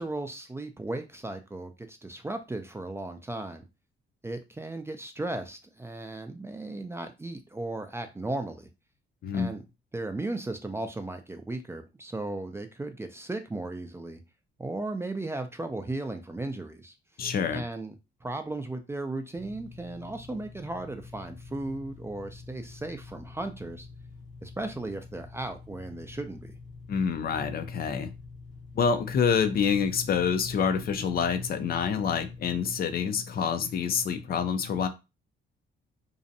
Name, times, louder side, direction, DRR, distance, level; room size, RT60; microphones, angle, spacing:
voice 1, 0.0-3.6 4.2-8.7 9.3-9.6 9.9-14.2 14.6-16.9 17.5-17.9 18.2-23.9 24.4-26.5, right 2 dB, 15° right, 0.4 m, -36 dB
voice 2, 17.2-17.6 26.9-28.1 28.8-34.9, left 6 dB, 50° left, 0.4 m, -27 dB
sound 1, 19.3-32.6, left 3 dB, 70° left, 0.9 m, -47 dB
2.6 x 2.1 x 2.6 m
cardioid pair, 90°, 20 cm